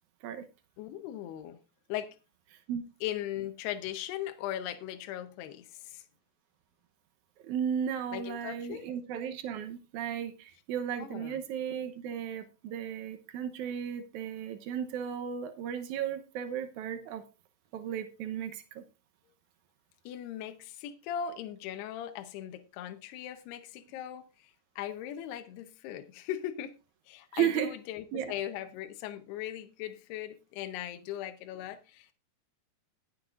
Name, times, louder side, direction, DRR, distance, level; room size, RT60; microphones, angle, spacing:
voice 1, 0.8-1.6 1.9-2.2 3.0-6.0 8.1-8.9 11.0-11.4 20.1-24.3 24.8-26.7 27.1-32.1, left 11 dB, 80° left, 2.8 m, -39 dB
voice 2, 2.5-2.8 7.4-17.2 17.7-18.8 27.3-27.7 28.1-28.3, right 9 dB, 85° right, 1.6 m, -35 dB
21.0 x 8.4 x 2.5 m
omnidirectional pair, 4.7 m